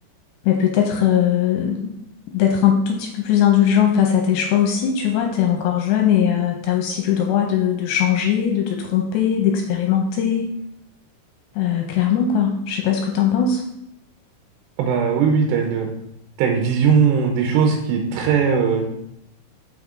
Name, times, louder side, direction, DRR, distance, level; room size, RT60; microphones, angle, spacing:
voice 1, 0.4-1.9 2.3-10.6 11.5-13.6, left 9 dB, 80° left, 2 dB, 2.7 m, -19 dB
voice 2, 14.8-15.9 16.4-18.8, right 6 dB, 80° right, 2 dB, 2.7 m, -19 dB
6.6 x 6.1 x 3.7 m, 0.79 s
omnidirectional pair, 5.5 m